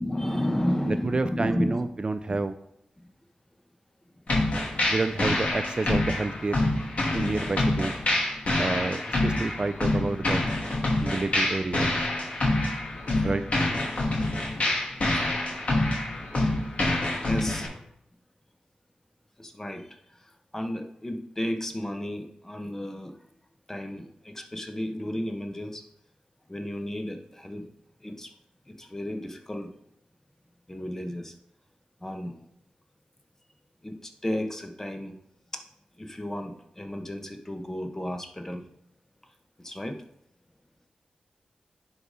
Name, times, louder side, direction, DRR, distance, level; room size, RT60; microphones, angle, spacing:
voice 1, 0.0-1.8 2.3-2.4 3.0-3.1 5.3-5.4 8.4-8.5 9.0-9.1 15.4-15.5 17.1-17.7 19.4-19.8 20.1-23.2 23.7-25.8 26.5-27.7 28.0-28.3 28.7-29.7 30.7-31.3 32.0-32.4 33.8-35.2 35.5-35.6 36.0-38.6 39.6-40.0, left 1 dB, 15° left, 5 dB, 1.1 m, -33 dB
voice 2, 0.8-2.5 4.9-6.6 7.1-7.9 8.6-10.4 11.0-11.9 13.2-13.4, right 3 dB, 35° right, 10 dB, 0.4 m, -29 dB
sound 1, 4.3-17.7, left 2 dB, 55° left, 2.5 m, -26 dB
10.0 x 4.1 x 5.0 m, 0.75 s
wide cardioid pair, 85°, 3 cm